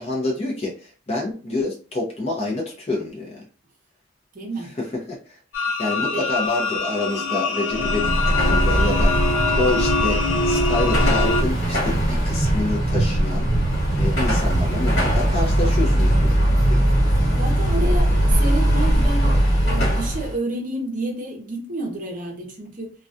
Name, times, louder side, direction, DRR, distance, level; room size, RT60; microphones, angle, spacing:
voice 1, 0.0-3.4 4.8-13.5 14.0-16.4 16.6-16.8 17.8-17.9, left 2 dB, 30° left, 0.6 m, -28 dB
voice 2, 4.3-4.7 6.1-6.3 17.4-19.3 19.6-23.0, right 2 dB, 40° right, 0.7 m, -30 dB
sound 1, 5.5-11.4, left 3 dB, 75° left, 0.6 m, -24 dB
Car passing by / Traffic noise roadway noise / Engine, 7.7-20.3, right 1 dB, 50° left, 1.4 m, -20 dB
2.3 x 2.2 x 2.6 m
head